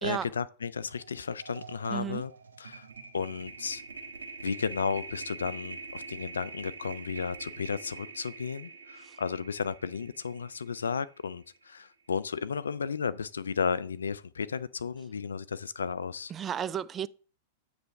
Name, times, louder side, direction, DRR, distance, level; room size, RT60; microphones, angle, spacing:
voice 1, 0.0-2.3 2.6-2.9 3.1-3.8 4.4-16.3, left 6 dB, 85° left, 0.4 m, -33 dB
sound 1, 0.9-1.1 1.4-11.6, right 4 dB, 90° right, 1.0 m, -45 dB
voice 2, 1.9-2.2 9.0-9.2 16.3-17.1, right 9 dB, 25° right, 0.4 m, -33 dB
8.0 x 3.3 x 6.3 m
hypercardioid pair, 105°, 0 cm